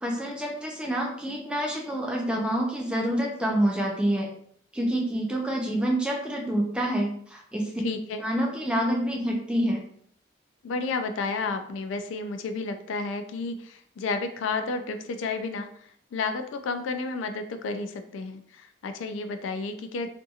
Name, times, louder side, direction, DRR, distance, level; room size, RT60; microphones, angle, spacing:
voice 1, 0.0-4.3 4.7-7.7 8.2-9.8, right 1 dB, 5° right, -1 dB, 0.4 m, -27 dB
voice 2, 7.8-8.2 10.6-20.1, left 4 dB, 80° left, 8 dB, 0.3 m, -31 dB
2.7 x 2.6 x 2.4 m, 0.64 s
head